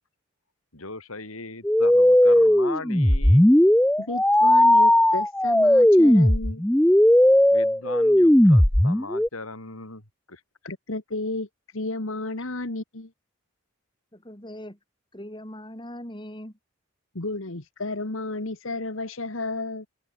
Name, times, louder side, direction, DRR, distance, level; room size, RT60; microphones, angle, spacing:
voice 1, 0.7-3.5 7.5-10.4, left 3 dB, 85° left, 6.6 m, -38 dB
sound 1, 1.6-9.3, left 1 dB, 5° left, 0.4 m, -17 dB
voice 2, 4.0-6.6 10.6-13.1 17.2-19.9, left 2 dB, 70° left, 1.9 m, -32 dB
voice 3, 14.1-14.8 15.1-16.6, left 1 dB, 20° left, 4.4 m, -40 dB
head